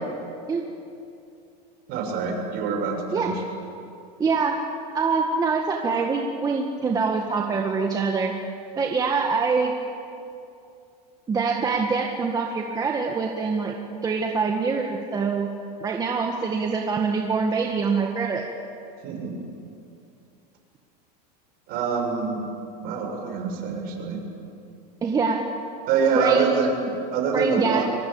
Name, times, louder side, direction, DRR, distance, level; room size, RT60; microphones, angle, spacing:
voice 1, 1.9-3.3 19.0-19.3 21.7-22.4 22.8-24.2 25.9-27.8, right 5 dB, 50° right, 2 dB, 6.7 m, -25 dB
voice 2, 4.2-4.6 4.9-8.3 8.8-9.7 11.3-13.7 14.0-15.5 15.8-18.4 25.0-25.4 26.2-26.6 27.3-27.8, right 5 dB, 20° right, 1 dB, 1.8 m, -24 dB
24.0 x 23.0 x 8.7 m, 2.6 s
supercardioid pair, 140°, 21 cm